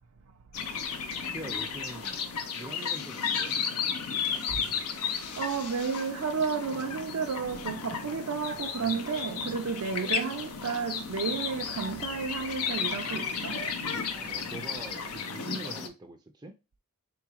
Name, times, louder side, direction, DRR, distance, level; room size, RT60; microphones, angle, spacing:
sound 1, 0.5-15.9, left 6 dB, 90° left, 0.7 m, -34 dB
voice 1, 1.3-2.2 2.5-3.6 8.8-9.2 14.1-16.5, right 2 dB, 20° right, 0.4 m, -44 dB
voice 2, 5.4-13.6, right 5 dB, 75° right, 0.5 m, -32 dB
3.7 x 3.5 x 3.0 m
head